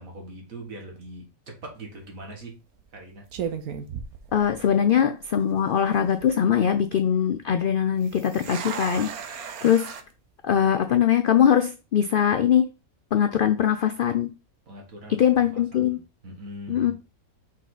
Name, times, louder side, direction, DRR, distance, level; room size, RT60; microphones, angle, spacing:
voice 1, 0.0-2.6 2.9-3.3 14.7-16.9, right 1 dB, 65° right, 1 dB, 2.3 m, -42 dB
sound 1, 1.8-2.1 2.8-3.0 3.3-4.9 5.2-5.3 5.9-6.3 8.0-10.0, right 7 dB, 85° right, 1.3 m, -35 dB
voice 2, 4.3-9.9 10.4-12.7 13.1-14.3 15.1-16.0 16.7-16.9, left 9 dB, 90° left, 9 dB, 0.4 m, -22 dB
5.7 x 4.9 x 3.9 m, 0.31 s
omnidirectional pair, 1.5 m